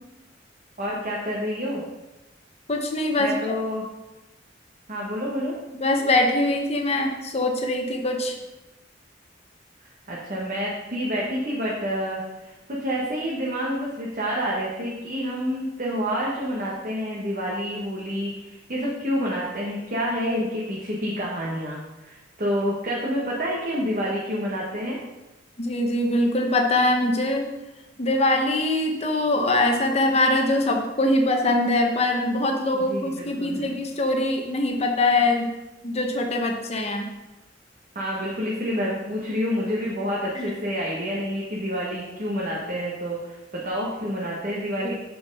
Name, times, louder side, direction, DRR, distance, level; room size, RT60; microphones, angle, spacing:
voice 1, 0.8-1.8 3.2-3.8 4.9-5.6 10.1-25.0 32.7-33.6 37.9-44.9, equal, 45° right, -5 dB, 1.3 m, -28 dB
voice 2, 2.7-3.4 5.7-8.4 25.6-27.5 28.0-35.5 35.8-37.0 40.3-40.5, left 2 dB, 35° left, 2 dB, 0.9 m, -23 dB
7.5 x 4.6 x 5.4 m, 1.0 s
head